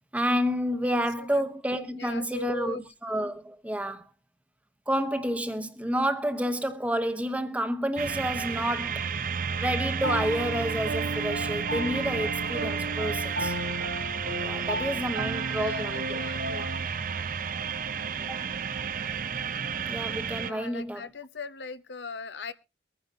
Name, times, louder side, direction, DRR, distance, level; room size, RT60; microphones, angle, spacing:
voice 1, 0.1-4.0 4.9-9.1 9.6-13.5 14.4-16.7 18.3-18.4 19.9-21.1, equal, 10° right, 0.9 m, -30 dB
voice 2, 2.0-2.8 14.7-14.8 15.5-16.4 16.7-16.8 20.4-22.5, left 4 dB, 80° left, 0.8 m, -39 dB
sound 1, 8.0-20.5, right 6 dB, 50° right, 0.6 m, -32 dB
Piano, 10.0-16.9, right 1 dB, 80° right, 1.4 m, -34 dB
23.0 x 9.7 x 2.7 m
head